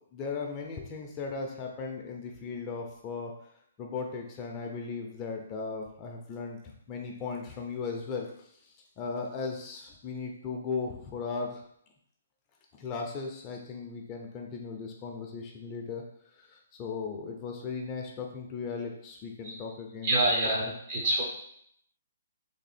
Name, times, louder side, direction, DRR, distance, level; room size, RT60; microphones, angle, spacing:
voice 1, 0.1-3.3 3.8-8.5 9.0-11.6 12.8-16.0 16.4-20.5, left 4 dB, 25° left, 1 dB, 0.6 m, -37 dB
voice 2, 20.0-21.2, right 1 dB, 40° right, -2 dB, 1.3 m, -27 dB
3.6 x 2.6 x 4.2 m, 0.68 s
hypercardioid pair, 140°, 0 cm